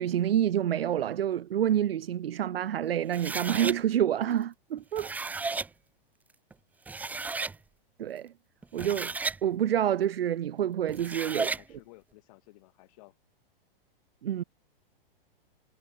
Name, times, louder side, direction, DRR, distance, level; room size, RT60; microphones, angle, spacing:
voice 1, 0.0-5.1 8.0-8.3 8.7-9.1 9.4-11.5 14.2-14.4, right 10 dB, 75° right, 2.5 m, -28 dB
sound 1, 3.1-3.8 4.8-5.7 6.5-6.6 6.9-7.6 8.6-9.4 10.9-11.6, right 4 dB, 5° right, 1.3 m, -33 dB
voice 2, 11.3-13.1, left 22 dB, 40° left, 7.1 m, -56 dB
hypercardioid pair, 165°, 29 cm